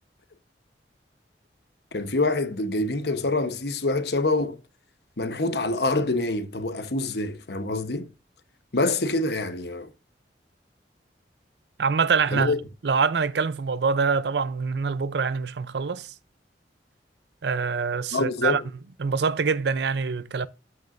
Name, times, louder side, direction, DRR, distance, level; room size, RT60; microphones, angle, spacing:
voice 1, 1.9-4.6 5.2-8.1 8.7-9.9 12.3-12.6 18.1-18.6, left 2 dB, 65° left, 1.0 m, -26 dB
voice 2, 11.8-12.6 12.8-16.1 17.4-18.6 19.0-20.5, right 5 dB, 70° right, 0.5 m, -25 dB
13.5 x 5.4 x 2.5 m
head